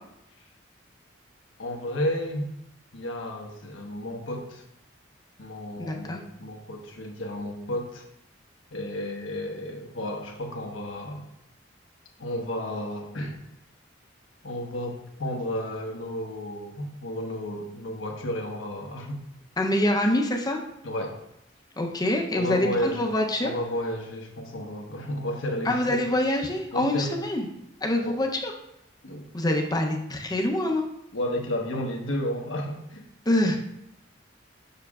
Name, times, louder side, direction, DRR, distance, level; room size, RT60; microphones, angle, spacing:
voice 1, 1.6-2.5 2.9-4.6 5.4-8.1 8.7-11.2 12.2-13.4 14.4-19.2 20.8-21.2 22.3-23.0 23.4-26.0 26.7-27.1 28.0-28.2 29.0-29.3 31.1-33.1, left 1 dB, 85° left, 1 dB, 1.2 m, -32 dB
voice 2, 5.8-6.2 19.6-20.6 21.8-23.5 25.6-27.4 27.8-28.5 29.3-30.9 33.3-33.6, left 1 dB, 20° left, 2 dB, 0.7 m, -25 dB
6.8 x 6.7 x 2.4 m, 0.82 s
head